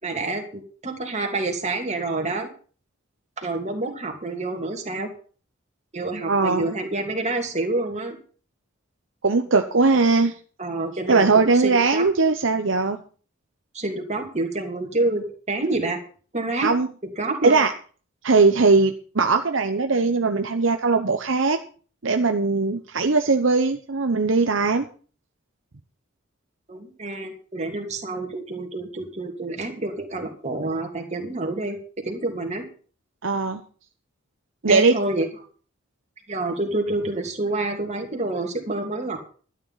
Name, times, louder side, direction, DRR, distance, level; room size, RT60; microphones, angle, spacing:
voice 1, 0.0-2.5 3.4-5.1 5.9-8.2 10.6-11.3 11.5-12.1 13.7-16.0 16.3-16.7 17.2-17.7 26.7-31.8 32.0-32.6 34.7-35.3 36.3-39.2, right 2 dB, 35° right, 3 dB, 2.9 m, -28 dB
voice 2, 6.3-6.7 9.2-10.3 11.1-13.0 16.6-16.9 17.4-17.7 18.2-21.6 22.0-24.9 33.2-33.6 34.6-34.9, right 3 dB, 70° right, 6 dB, 0.9 m, -20 dB
12.5 x 9.9 x 5.7 m, 0.40 s
head